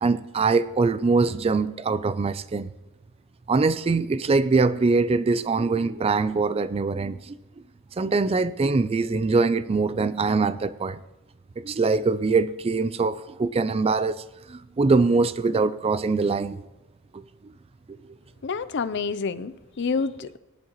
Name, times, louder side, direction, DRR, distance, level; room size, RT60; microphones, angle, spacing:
voice 1, 0.0-2.7 3.5-7.4 8.0-11.0 11.6-16.6 17.1-17.2 17.9-18.0, right 4 dB, 25° right, 0.3 m, -23 dB
voice 2, 18.4-20.4, left 5 dB, 55° left, 0.5 m, -28 dB
19.0 x 10.5 x 3.0 m
head